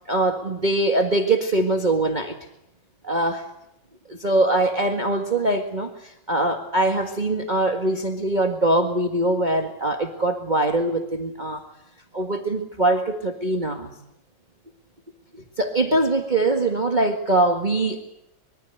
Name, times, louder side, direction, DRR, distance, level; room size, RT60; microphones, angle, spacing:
voice 1, 0.1-2.4 3.0-3.4 4.1-11.6 12.1-13.9 15.6-18.0, right 2 dB, 25° right, 5 dB, 1.9 m, -22 dB
24.5 x 23.0 x 8.0 m, 0.83 s
omnidirectional pair, 2.0 m